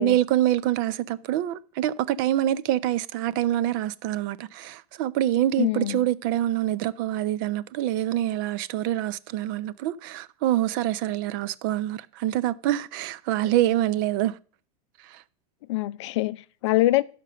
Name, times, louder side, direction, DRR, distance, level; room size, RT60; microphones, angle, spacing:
voice 1, 0.0-14.4 15.1-15.2, right 13 dB, 35° right, 0.4 m, -25 dB
voice 2, 5.6-6.0 15.7-17.0, left 17 dB, 50° left, 0.5 m, -24 dB
11.5 x 5.1 x 6.6 m
supercardioid pair, 170°, 19 cm